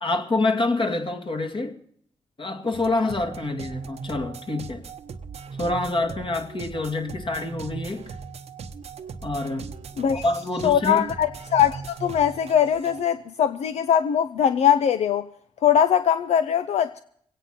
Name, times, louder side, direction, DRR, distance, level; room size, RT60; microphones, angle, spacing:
voice 1, 0.0-1.8 2.4-4.8 5.6-8.1 9.2-9.7 10.1-11.0, left 2 dB, 50° left, 2.2 m, -27 dB
sound 1, 2.7-13.0, right 5 dB, 75° right, 1.0 m, -38 dB
voice 2, 10.6-15.2 15.6-17.0, left 9 dB, 80° left, 0.5 m, -21 dB
22.5 x 9.1 x 5.8 m
cardioid pair, 50°, 11 cm